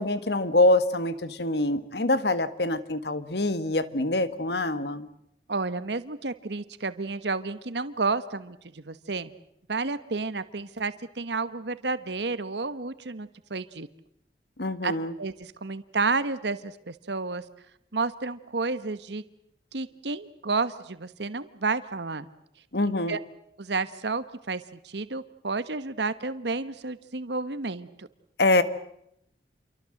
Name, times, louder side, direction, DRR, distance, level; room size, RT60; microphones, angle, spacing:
voice 1, 0.0-5.1 14.6-15.1 22.7-23.2 28.4-28.6, left 2 dB, 70° left, 13 dB, 1.7 m, -25 dB
voice 2, 5.5-9.3 9.7-13.9 14.8-14.9 15.2-17.4 17.9-19.2 19.7-22.3 22.8-23.2 23.6-28.1, right 3 dB, 80° right, 13 dB, 1.2 m, -31 dB
28.5 x 23.5 x 7.8 m, 0.77 s
head